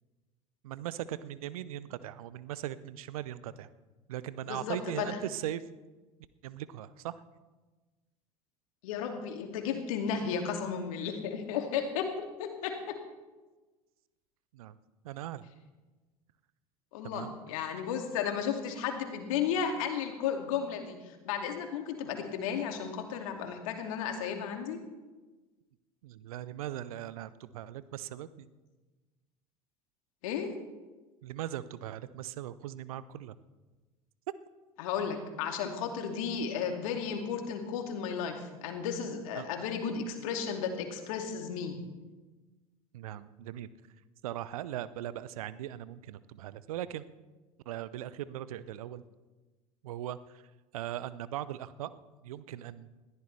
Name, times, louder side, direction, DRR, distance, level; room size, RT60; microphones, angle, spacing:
voice 1, 0.6-3.7 4.1-5.6 6.4-7.2 14.5-14.8 15.0-15.5 17.0-17.3 26.0-28.5 31.2-33.3 39.4-39.5 42.9-43.7 44.2-47.0 47.7-49.0 49.8-50.2 50.7-51.9 52.2-52.9, right 12 dB, 65° right, 17 dB, 0.7 m, -39 dB
voice 2, 4.5-5.2 8.8-13.0 16.9-24.8 30.2-30.5 34.8-41.8, left 7 dB, 60° left, 4 dB, 2.3 m, -34 dB
20.5 x 14.0 x 3.3 m, 1.2 s
figure-of-eight pair, 75°, 20 cm